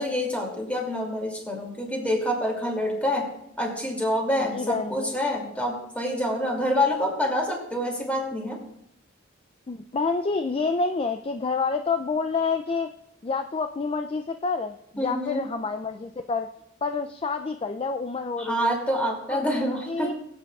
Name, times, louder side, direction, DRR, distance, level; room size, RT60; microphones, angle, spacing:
voice 1, 0.0-3.3 3.6-8.6 15.0-15.4 18.4-20.1, equal, 5° left, 0 dB, 2.6 m, -27 dB
voice 2, 4.5-5.1 9.7-12.9 13.2-16.5 16.8-18.8 19.3-20.1, left 4 dB, 30° left, 8 dB, 0.4 m, -28 dB
22.0 x 8.3 x 2.4 m, 0.79 s
head